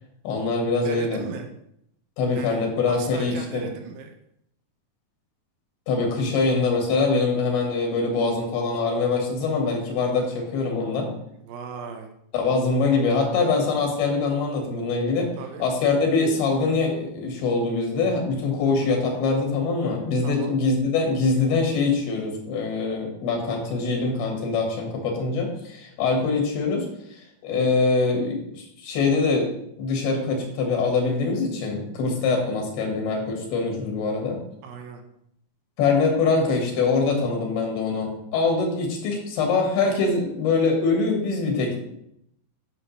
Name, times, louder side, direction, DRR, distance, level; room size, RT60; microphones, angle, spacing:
voice 1, 0.2-1.2 2.2-3.7 5.9-11.1 12.3-15.3 15.6-29.5 29.8-34.4 35.8-41.9, left 4 dB, 85° left, 1 dB, 3.6 m, -23 dB
voice 2, 0.8-1.5 2.2-4.1 11.3-12.1 15.4-15.7 20.2-20.6 34.6-35.0, right 6 dB, 85° right, 4 dB, 2.8 m, -37 dB
11.0 x 5.7 x 3.2 m, 0.74 s
omnidirectional pair, 4.3 m